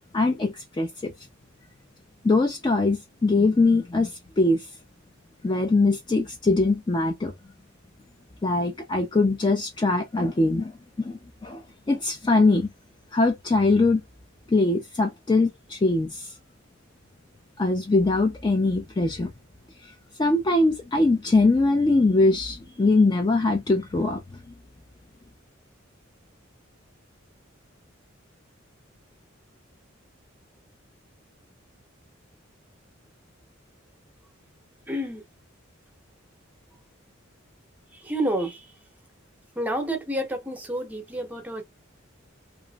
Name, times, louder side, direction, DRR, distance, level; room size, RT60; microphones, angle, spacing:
voice 1, 0.1-1.1 2.2-4.7 5.4-7.3 8.4-10.7 11.0-12.7 13.1-14.0 14.5-16.3 17.6-19.3 19.8-19.9 20.2-24.2, left 2 dB, 20° left, 0.4 m, -22 dB
voice 2, 34.9-35.2 37.9-38.7 39.6-41.6, right 1 dB, 10° right, 0.7 m, -29 dB
2.9 x 2.5 x 2.2 m
head